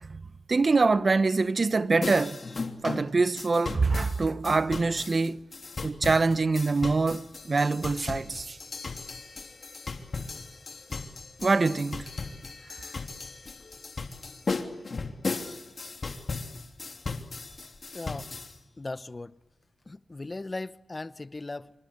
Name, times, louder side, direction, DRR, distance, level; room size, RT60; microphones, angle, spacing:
voice 1, 0.0-2.4 2.8-5.4 5.8-8.6 11.4-12.1 12.8-12.9, right 3 dB, 45° right, 1.0 m, -25 dB
sound 1, 2.0-18.5, left 4 dB, 50° left, 3.1 m, -37 dB
voice 2, 17.9-18.3 18.8-19.4 19.9-21.7, left 2 dB, 35° left, 0.9 m, -38 dB
27.0 x 26.0 x 8.3 m
cardioid pair, 60°, 0 cm